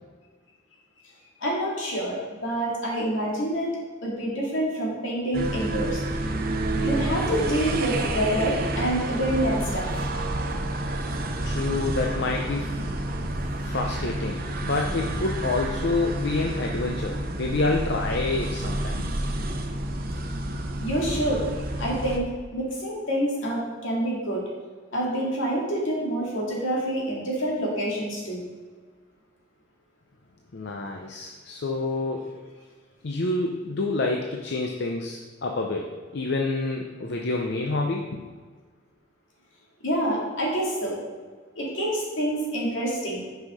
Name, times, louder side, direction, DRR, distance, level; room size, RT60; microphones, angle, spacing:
voice 1, 1.4-3.7 4.0-6.0 6.8-10.0 20.8-21.4 21.8-24.4 24.9-28.4 39.8-41.0 41.6-43.2, right 1 dB, 75° left, -4 dB, 2.3 m, -27 dB
sound 1, 5.3-22.2, right 1 dB, 50° right, 0.7 m, -29 dB
voice 2, 11.4-12.8 13.6-19.1 30.5-32.3 33.0-38.2, left 3 dB, 60° left, 1 dB, 0.6 m, -28 dB
6.3 x 5.6 x 4.9 m, 1.5 s
head